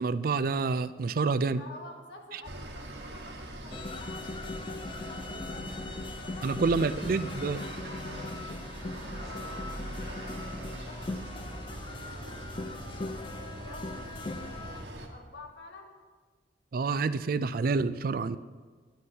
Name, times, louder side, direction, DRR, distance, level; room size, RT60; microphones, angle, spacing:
voice 1, 0.0-1.6 6.4-7.6 16.7-18.4, right 4 dB, 55° right, 14 dB, 0.4 m, -28 dB
voice 2, 1.5-4.3 4.6-5.8 6.1-6.7 7.1-12.4 13.1-15.9, left 2 dB, 75° left, 1 dB, 1.7 m, -50 dB
sound 1, 2.4-15.1, right 1 dB, 80° right, 1.4 m, -42 dB
sound 2, 3.7-14.9, left 2 dB, 30° left, 0.4 m, -40 dB
19.5 x 9.5 x 2.8 m, 1.5 s
head